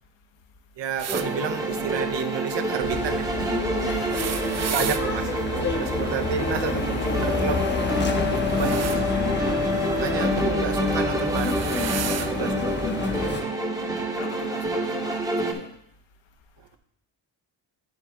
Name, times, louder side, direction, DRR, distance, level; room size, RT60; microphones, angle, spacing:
voice 1, 0.8-3.3 4.6-7.7 8.3-9.1 9.8-11.8 12.2-12.8 16.6-16.8, right 8 dB, 65° right, 9 dB, 0.8 m, -31 dB
sound 1, 1.0-1.3 3.9-5.0 8.2-9.0 10.4-10.6 11.2-12.3 13.3-13.4 14.6-14.7, right 9 dB, 35° right, 0.4 m, -32 dB
sound 2, 1.1-15.5, equal, 5° right, 0.8 m, -27 dB
sound 3, 2.8-13.4, left 4 dB, 25° left, 0.7 m, -29 dB
voice 2, 3.7-4.7 14.0-15.8 16.2-16.8, left 6 dB, 70° left, 5 dB, 1.1 m, -43 dB
10.0 x 4.1 x 3.6 m, 0.71 s
cardioid pair, 95°, 46 cm